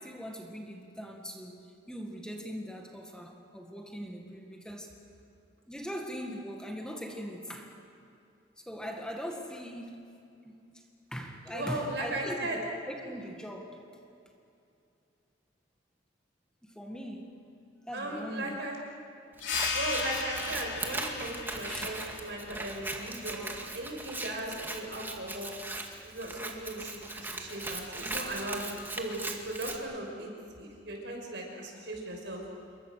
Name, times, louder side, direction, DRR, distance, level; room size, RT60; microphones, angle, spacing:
voice 1, 0.0-4.9 5.7-7.8 8.6-10.1 10.4-10.8 11.1-13.8 16.6-17.4 17.9-18.6 19.5-19.6 21.7-22.1 23.4-23.7, equal, 5° left, 1 dB, 1.9 m, -41 dB
voice 2, 11.5-12.6 13.0-13.1 17.9-18.8 19.7-25.5 26.0-30.3 30.6-32.4, right 1 dB, 70° right, 1 dB, 6.2 m, -37 dB
sound 1, 19.4-24.6, left 5 dB, 85° left, 4.3 m, -38 dB
Scissors, 19.4-29.8, right 2 dB, 10° right, 2.0 m, -39 dB
27.5 x 23.5 x 6.6 m, 2.6 s
head